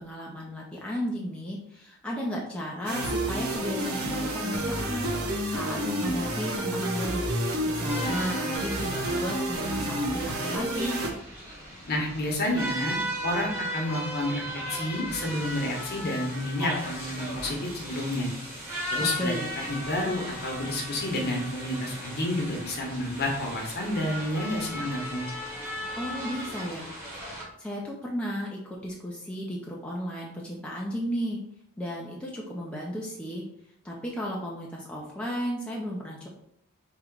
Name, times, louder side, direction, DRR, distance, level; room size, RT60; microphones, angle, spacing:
voice 1, 0.0-11.0 19.0-19.5 26.0-26.9 27.6-31.4 31.8-33.4 33.8-36.3, equal, 5° left, -4 dB, 0.6 m, -34 dB
sound 1, 2.9-11.1, right 1 dB, 80° right, 0.9 m, -30 dB
sound 2, 7.9-27.4, equal, 10° right, 1.1 m, -37 dB
voice 2, 11.9-13.0 13.2-14.4 14.7-18.3 18.9-25.3, left 1 dB, 45° left, 0 dB, 1.1 m, -30 dB
3.8 x 3.1 x 4.6 m, 0.72 s
head